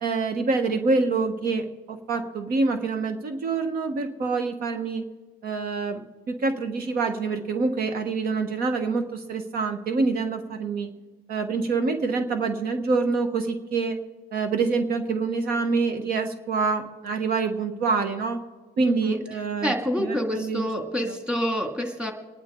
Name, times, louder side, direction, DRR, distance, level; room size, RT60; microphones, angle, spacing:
voice 1, 0.0-5.0 5.4-6.0 6.3-10.9 11.3-14.0 14.3-18.4 18.8-20.7, right 4 dB, 60° right, 7 dB, 1.2 m, -26 dB
voice 2, 18.8-19.2 19.6-22.1, equal, 5° right, 3 dB, 2.2 m, -27 dB
26.0 x 10.5 x 3.7 m, 1.3 s
cardioid pair, 110°, 17 cm